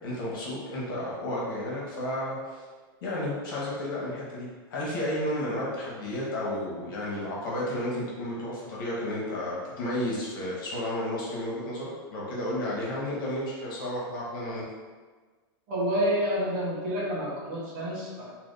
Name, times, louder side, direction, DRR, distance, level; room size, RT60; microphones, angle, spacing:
voice 1, 0.0-2.6 3.0-14.7, left 1 dB, 65° left, -5 dB, 1.4 m, -32 dB
voice 2, 15.7-18.3, equal, 35° right, -7 dB, 1.1 m, -29 dB
4.9 x 3.0 x 2.6 m, 1.4 s
supercardioid pair, 180°, 13 cm